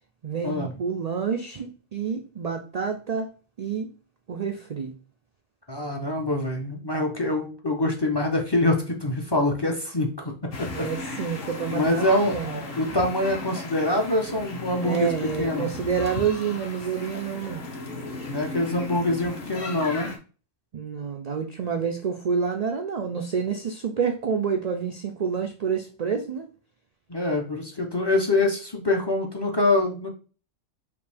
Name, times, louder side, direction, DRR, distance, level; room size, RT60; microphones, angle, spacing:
voice 1, 0.2-3.3 3.6-3.9 4.3-4.9 10.7-12.6 14.8-17.6 20.7-26.5, right 6 dB, 85° right, 4 dB, 0.3 m, -28 dB
voice 2, 5.7-10.3 10.6-11.3 11.7-12.4 12.7-15.7 18.3-20.1 27.1-30.1, left 2 dB, 35° left, 2 dB, 0.4 m, -25 dB
sound 1, 10.5-20.2, left 2 dB, 50° left, 1.0 m, -36 dB
5.1 x 2.6 x 3.3 m, 0.36 s
omnidirectional pair, 1.3 m